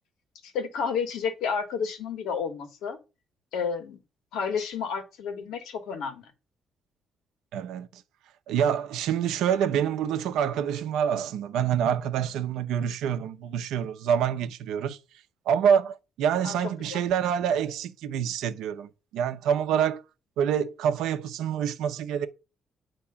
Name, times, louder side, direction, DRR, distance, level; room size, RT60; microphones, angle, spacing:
voice 1, 0.4-3.0 3.5-4.0 4.3-6.3 16.4-16.5 16.9-17.0, left 6 dB, 90° left, 1.4 m, -31 dB
voice 2, 7.5-8.0 8.5-15.0 15.5-20.0 20.4-22.3, right 8 dB, 90° right, 0.7 m, -26 dB
8.5 x 3.0 x 5.8 m
cardioid pair, 90°, 0 cm